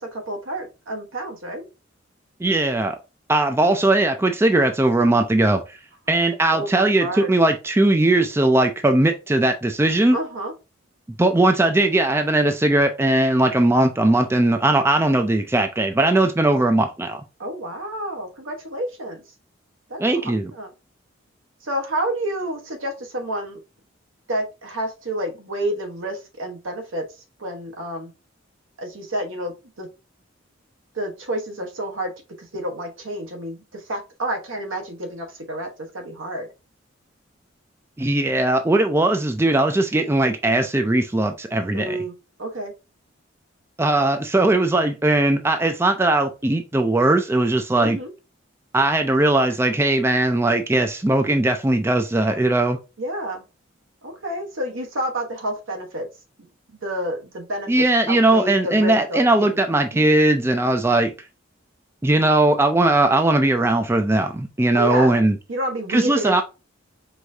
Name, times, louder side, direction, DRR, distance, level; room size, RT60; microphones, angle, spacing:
voice 1, 0.0-1.6 6.5-7.3 10.1-10.5 17.4-19.2 19.9-20.7 21.6-23.6 24.3-27.0 27.4-28.1 28.8-29.9 30.9-32.1 32.4-36.5 41.7-42.1 42.4-42.7 47.8-48.1 53.0-53.4 54.0-56.1 56.8-59.5 59.9-60.1 64.7-65.2 65.5-66.4, right 1 dB, 80° right, 1.1 m, -29 dB
voice 2, 2.4-3.0 3.3-5.8 6.1-10.2 11.2-17.2 20.0-20.5 38.0-42.0 43.8-48.0 48.7-52.8 57.7-61.1 62.0-65.3 65.9-66.4, right 2 dB, 10° right, 0.3 m, -19 dB
4.7 x 2.6 x 3.3 m
head